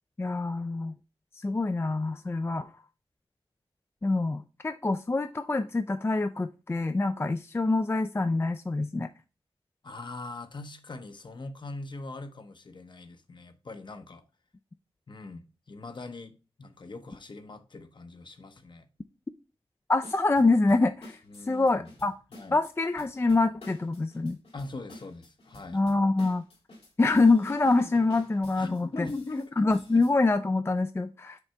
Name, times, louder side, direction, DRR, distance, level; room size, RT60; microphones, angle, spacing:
voice 1, 0.2-0.9 1.4-2.7 4.0-9.1 19.9-21.2 21.5-22.1 22.5-24.4 25.7-26.4 27.0-29.1 29.6-31.4, left 3 dB, 25° left, 0.4 m, -25 dB
voice 2, 9.8-14.2 15.1-18.9 21.3-21.9 22.3-22.6 24.5-25.8 28.6-29.5 29.9-30.1, left 2 dB, 55° left, 0.8 m, -41 dB
sound 1, 20.0-30.1, left 1 dB, 80° left, 2.4 m, -50 dB
5.9 x 3.3 x 5.6 m
wide cardioid pair, 70°, 10 cm